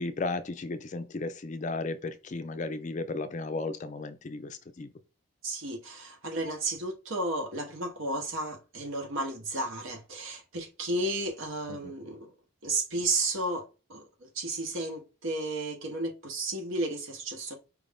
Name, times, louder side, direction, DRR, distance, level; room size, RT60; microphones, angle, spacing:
voice 1, 0.0-4.9 11.8-11.9, left 3 dB, 35° left, 0.4 m, -34 dB
voice 2, 5.4-12.3 12.6-17.6, right 2 dB, 70° right, 1.0 m, -33 dB
4.8 x 2.5 x 3.4 m
head